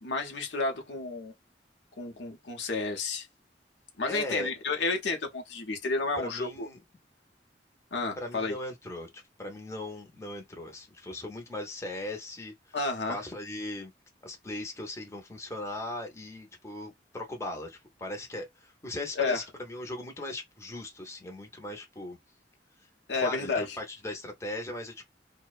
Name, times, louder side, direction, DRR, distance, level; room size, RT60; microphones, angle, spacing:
voice 1, 0.0-1.3 2.0-3.3 4.0-6.7 7.9-8.6 12.7-13.2 19.2-19.4 23.1-23.8, left 3 dB, 70° left, 0.7 m, -31 dB
voice 2, 4.1-4.5 6.2-6.8 8.2-12.8 13.1-13.9 14.2-22.2 23.1-25.0, left 1 dB, 15° left, 0.7 m, -39 dB
2.6 x 2.1 x 2.4 m
head